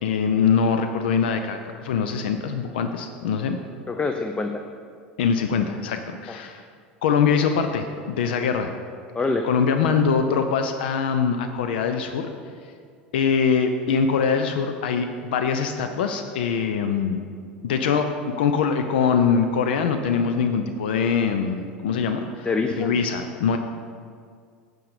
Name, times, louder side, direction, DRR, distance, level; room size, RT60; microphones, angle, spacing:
voice 1, 0.0-3.6 5.2-6.6 7.0-8.7 9.4-12.3 13.1-17.2 17.6-22.5 22.8-23.6, left 6 dB, 70° left, 7 dB, 0.6 m, -23 dB
voice 2, 3.9-4.6 6.3-6.4 9.1-9.5 22.4-23.0, left 3 dB, 20° left, 5 dB, 0.6 m, -25 dB
9.5 x 5.3 x 6.6 m, 2.1 s
hypercardioid pair, 80°, 6 cm